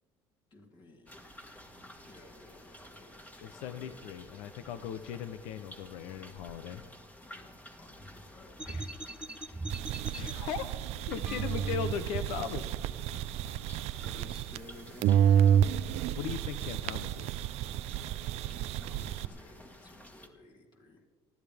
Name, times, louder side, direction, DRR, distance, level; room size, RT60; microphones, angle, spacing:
voice 1, 0.5-1.2 2.0-3.2 3.5-4.0 7.2-8.6 14.0-15.9 18.2-21.0, left 2 dB, 40° left, -1 dB, 3.0 m, -54 dB
sound 1, 1.1-20.3, left 1 dB, 15° left, 1.8 m, -52 dB
voice 2, 3.4-6.8 8.7-8.9 10.1-10.7 11.1-12.7 16.2-17.4, left 8 dB, 85° left, 11 dB, 0.8 m, -38 dB
sound 2, 8.6-10.3 11.2-12.2, right 2 dB, 10° right, 0.5 m, -40 dB
sound 3, 9.7-14.7 15.0-19.3, right 10 dB, 70° right, 0.5 m, -30 dB
19.5 x 13.5 x 3.6 m, 1.5 s
cardioid pair, 110°, 11 cm